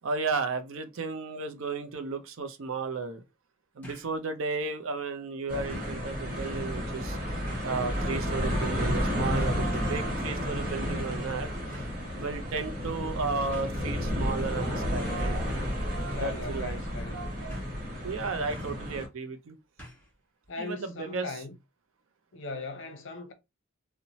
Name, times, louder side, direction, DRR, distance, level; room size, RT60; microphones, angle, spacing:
voice 1, 0.0-3.2 3.8-7.2 7.6-11.5 12.1-15.4 16.2-16.8 18.0-19.6 20.6-21.3, right 4 dB, 65° right, 0.5 m, -33 dB
sound 1, 1.9-2.0 3.8-4.2 4.6-4.7 5.7-6.0 7.5-7.8 8.8-9.0 9.4-10.1 11.7-12.0 13.0-13.1 13.5-13.7 15.0-15.4 15.9-16.2 16.4-16.5 17.5-17.8 18.5-18.9 19.8-20.1 20.4-20.5, equal, 5° left, 1.1 m, -48 dB
sound 2, 5.5-19.1, equal, 45° right, 0.9 m, -32 dB
sound 3, 7.7-17.6, right 4 dB, 85° right, 0.9 m, -46 dB
voice 2, 16.1-17.3 20.5-21.6 22.3-23.3, left 2 dB, 60° left, 0.7 m, -39 dB
2.7 x 2.1 x 2.9 m
head